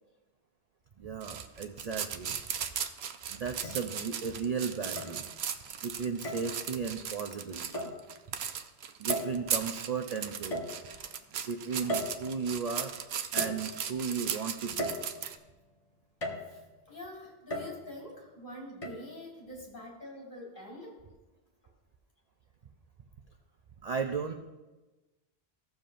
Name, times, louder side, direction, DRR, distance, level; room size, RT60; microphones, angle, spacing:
voice 1, 1.0-2.4 2.7-2.9 3.3-5.3 5.8-8.0 9.0-10.6 11.3-12.9 13.3-15.0 23.8-24.3, right 5 dB, 50° right, 5 dB, 0.5 m, -35 dB
sound 1, 1.2-15.4, right 8 dB, 75° right, 0.8 m, -37 dB
sound 2, 2.5-2.7 3.6-4.3 5.0-5.6 6.2-6.6 7.7-8.1 9.1-9.6 10.5-11.2 11.9-12.7 13.4-14.1 14.8-15.5 16.2-16.7 17.5-18.1 18.8-18.9, equal, 30° left, 1.2 m, -37 dB
voice 2, 16.4-21.0, left 1 dB, 50° left, -4 dB, 2.9 m, -46 dB
15.0 x 7.2 x 2.5 m, 1.1 s
omnidirectional pair, 1.1 m